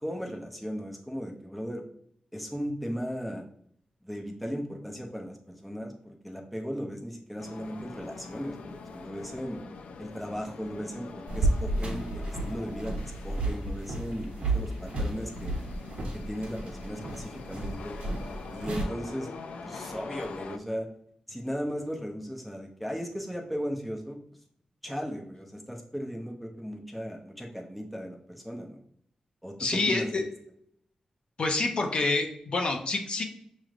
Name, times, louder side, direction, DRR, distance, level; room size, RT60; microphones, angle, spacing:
voice 1, 0.0-1.8 2.3-3.4 4.0-9.6 10.0-15.6 16.1-18.0 18.5-19.3 19.6-20.9 21.3-24.2 24.8-28.8 29.4-30.1, equal, ahead, 0 dB, 0.6 m, -36 dB
sound 1, 7.4-20.6, left 4 dB, 85° left, 0.4 m, -44 dB
sound 2, 11.3-18.8, right 2 dB, 75° right, 1.2 m, -32 dB
voice 2, 29.6-30.2 31.4-33.2, left 3 dB, 50° left, 3 dB, 0.7 m, -27 dB
6.3 x 3.1 x 2.4 m, 0.67 s
wide cardioid pair, 150°, 2 cm